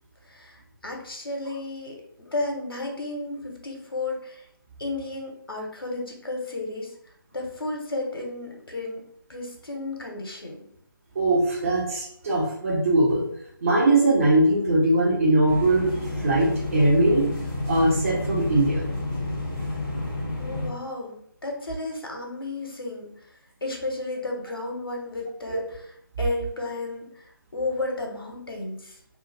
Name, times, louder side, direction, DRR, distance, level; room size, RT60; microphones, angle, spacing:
voice 1, 0.3-4.4 4.8-6.9 7.3-9.0 9.3-10.6 20.4-23.1 23.6-25.6 26.2-29.0, left 2 dB, 80° left, 1 dB, 1.1 m, -33 dB
voice 2, 11.1-13.3 13.6-15.9 16.2-17.3 17.7-18.8, right 1 dB, 40° right, -5 dB, 1.2 m, -21 dB
sound 1, 15.5-20.7, left 2 dB, 10° left, 0.9 m, -30 dB
2.7 x 2.5 x 4.0 m, 0.70 s
figure-of-eight pair, 155°, 12 cm